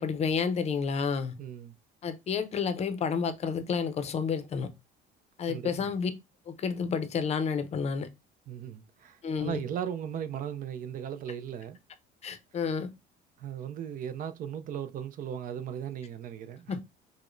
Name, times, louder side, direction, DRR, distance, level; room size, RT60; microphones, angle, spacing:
voice 1, 0.0-1.3 2.0-4.7 5.4-6.1 6.5-8.1 9.2-9.6 12.2-12.9 16.7-16.8, left 6 dB, 35° left, 0.6 m, -30 dB
voice 2, 1.4-1.7 5.5-5.9 8.5-11.8 13.4-16.8, right 9 dB, 50° right, 0.4 m, -37 dB
4.9 x 2.1 x 2.5 m
cardioid pair, 125°, 18 cm